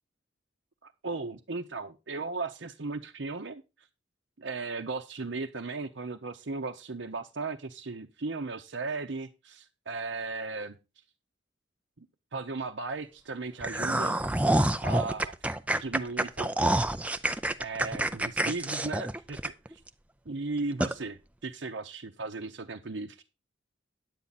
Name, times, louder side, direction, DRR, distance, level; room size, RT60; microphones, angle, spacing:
voice 1, 0.8-3.9 4.4-10.8 12.0-12.1 12.3-14.2 14.8-15.4 15.8-16.8 17.6-19.8 20.3-23.2, right 3 dB, 65° right, 2 dB, 0.8 m, -36 dB
sound 1, 13.6-19.9 20.3-20.4 20.8-20.9, right 1 dB, 5° right, 0.4 m, -27 dB
10.0 x 8.6 x 4.1 m, 0.27 s
head